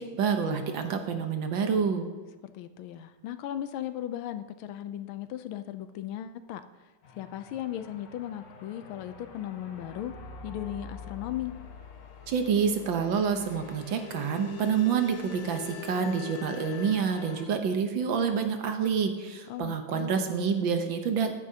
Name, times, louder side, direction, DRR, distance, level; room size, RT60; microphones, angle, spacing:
voice 1, 0.0-2.0 12.3-21.3, right 6 dB, 70° right, 6 dB, 1.6 m, -28 dB
voice 2, 2.5-6.6 7.1-10.1 10.4-11.6 19.5-20.3, left 11 dB, 80° left, 11 dB, 1.4 m, -37 dB
sound 1, 7.0-17.5, left 6 dB, 60° left, 1.5 m, -45 dB
15.0 x 10.0 x 2.8 m, 1.2 s
omnidirectional pair, 2.3 m